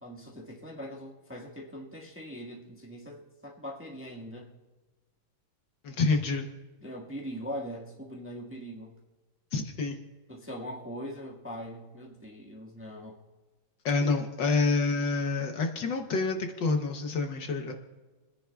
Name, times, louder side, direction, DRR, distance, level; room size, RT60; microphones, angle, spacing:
voice 1, 0.0-4.5 6.8-9.0 10.3-13.2, equal, 5° right, -2 dB, 1.2 m, -41 dB
voice 2, 5.8-6.5 9.5-10.0 13.8-17.7, left 3 dB, 65° left, 4 dB, 1.5 m, -28 dB
29.0 x 10.5 x 2.3 m, 1.2 s
omnidirectional pair, 2.4 m